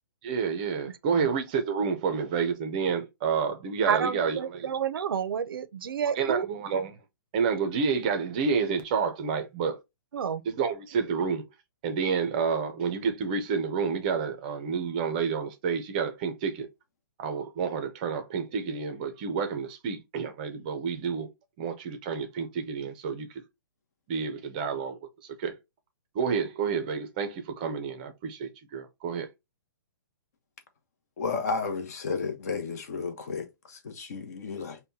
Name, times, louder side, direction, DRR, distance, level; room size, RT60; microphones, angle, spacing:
voice 1, 0.2-4.7 6.2-6.9 7.3-9.8 10.4-11.4 11.8-16.7 17.2-21.3 21.6-23.4 24.1-25.0 25.4-25.5 26.1-29.3, right 6 dB, 20° right, 0.6 m, -29 dB
voice 2, 3.9-6.5 10.1-10.4 11.1-11.2, right 7 dB, 85° right, 0.6 m, -30 dB
voice 3, 31.2-34.8, left 4 dB, 45° left, 0.9 m, -32 dB
5.2 x 2.2 x 2.7 m
hypercardioid pair, 175°, 12 cm